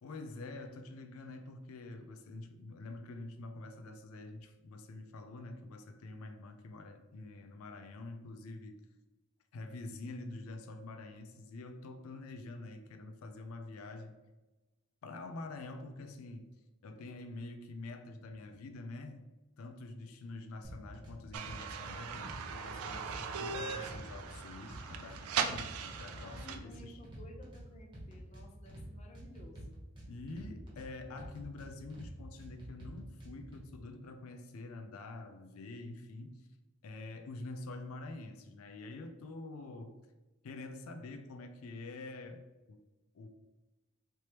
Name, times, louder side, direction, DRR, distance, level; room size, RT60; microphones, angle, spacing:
voice 1, 0.0-8.8 9.5-14.1 15.0-16.5 16.8-19.3 19.6-27.0 30.1-36.5 36.8-40.0 40.4-42.8 43.1-43.3, left 2 dB, 85° left, 6 dB, 0.4 m, -46 dB
sound 1, 20.6-21.1 21.4-22.4 22.7-24.4 24.7-25.6 25.9-27.6 27.9-28.9 29.1-30.9 31.2-32.1 32.4-33.6, right 1 dB, 20° right, 1.0 m, -48 dB
sound 2, 21.3-26.6, right 6 dB, 85° right, 0.4 m, -39 dB
voice 2, 26.2-29.8, equal, 30° left, 1 dB, 0.5 m, -54 dB
3.3 x 3.0 x 2.9 m, 1.1 s
head